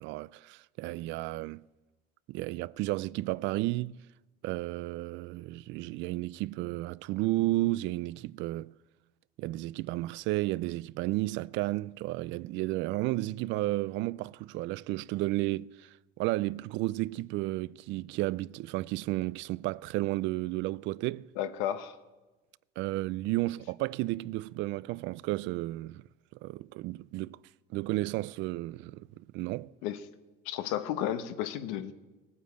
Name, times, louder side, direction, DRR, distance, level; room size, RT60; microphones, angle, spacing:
voice 1, 0.0-1.6 2.3-4.0 4.4-8.7 9.4-21.3 22.8-26.0 26.3-27.4 27.7-29.7, right 18 dB, 65° right, 0.4 m, -32 dB
voice 2, 21.4-22.0 29.8-30.0 30.4-31.9, left 11 dB, 85° left, 1.1 m, -33 dB
17.5 x 9.5 x 8.3 m
cardioid pair, 120°, 20 cm